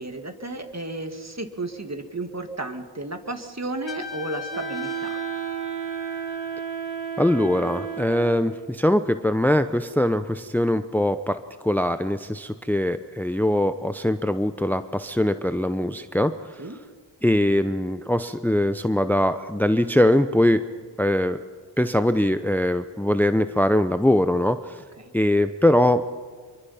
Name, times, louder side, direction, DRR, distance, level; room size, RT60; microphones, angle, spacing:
voice 1, 0.0-5.3 16.6-16.8 25.0-25.1, right 2 dB, 35° right, 6 dB, 2.0 m, -33 dB
Trumpet, 3.9-6.7, left 6 dB, 85° left, 3.0 m, -38 dB
Wind instrument woodwind instrument, 4.5-8.6, right 8 dB, 70° right, 5.2 m, -32 dB
voice 2, 7.2-11.4 11.6-16.3 17.2-20.6 21.0-21.4 21.8-24.6 25.1-26.0, left 1 dB, 5° left, 11 dB, 0.8 m, -22 dB
25.0 x 23.0 x 5.8 m, 1.5 s
cardioid pair, 45°, 44 cm